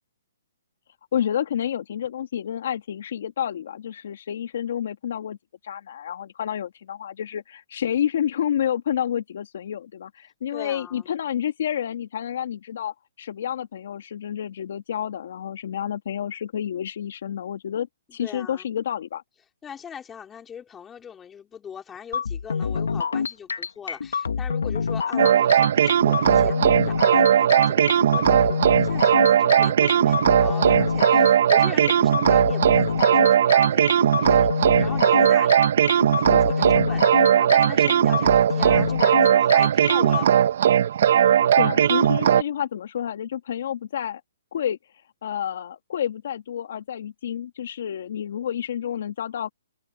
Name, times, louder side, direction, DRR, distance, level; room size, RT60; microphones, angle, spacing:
voice 1, 1.1-5.4 5.6-19.2 41.5-44.2 44.5-44.8 45.2-49.5, left 9 dB, 60° left, 2.5 m, -29 dB
voice 2, 10.5-11.1 18.2-18.7 19.6-35.6 35.9-40.4, left 8 dB, 10° left, 5.4 m, -40 dB
sound 1, 22.1-40.2, left 6 dB, 90° left, 1.7 m, -27 dB
sound 2, 25.2-42.4, right 9 dB, 60° right, 1.9 m, -18 dB
hypercardioid pair, 155°, 0 cm